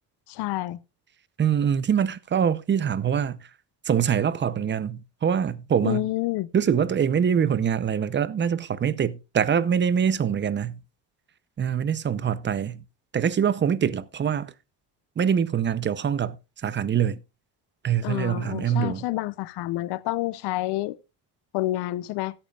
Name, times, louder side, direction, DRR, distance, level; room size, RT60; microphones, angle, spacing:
voice 1, 0.3-0.8 5.8-6.5 18.0-21.0 21.5-22.3, left 17 dB, 80° left, 0.7 m, -28 dB
voice 2, 1.4-3.5 3.8-6.1 6.5-10.8 11.6-12.8 13.1-14.5 15.2-17.2 17.8-19.1, right 8 dB, 30° right, 0.6 m, -24 dB
16.0 x 8.9 x 2.3 m
cardioid pair, 120°, 40 cm